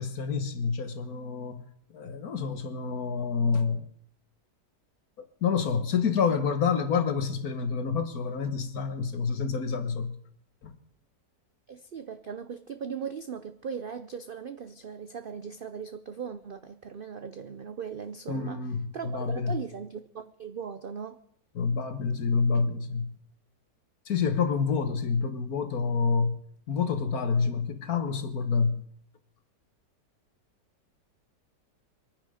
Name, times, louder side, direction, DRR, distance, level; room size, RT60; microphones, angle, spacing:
voice 1, 0.0-1.6 1.9-3.9 5.2-10.1 10.6-10.7 18.3-19.6 21.6-23.1 24.1-26.4 26.7-28.8, left 5 dB, 60° left, 1.7 m, -28 dB
voice 2, 11.7-18.6 18.9-21.2, right 6 dB, 85° right, 0.4 m, -38 dB
23.0 x 9.6 x 5.0 m
omnidirectional pair, 1.8 m